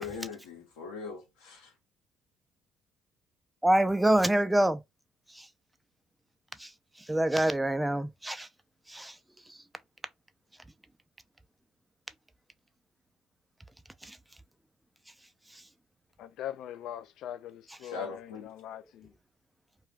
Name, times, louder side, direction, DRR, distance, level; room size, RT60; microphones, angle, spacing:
voice 1, 0.0-1.7 17.8-18.5, left 5 dB, 90° left, 0.8 m, -40 dB
voice 2, 3.6-4.8 5.3-5.5 6.6-6.7 7.0-8.5 8.9-9.2 9.5-9.6 14.0-14.2 15.5-15.6, right 1 dB, 10° right, 0.5 m, -26 dB
voice 3, 16.2-19.1, left 11 dB, 70° left, 0.3 m, -42 dB
2.3 x 2.3 x 3.2 m
hypercardioid pair, 65°, 0 cm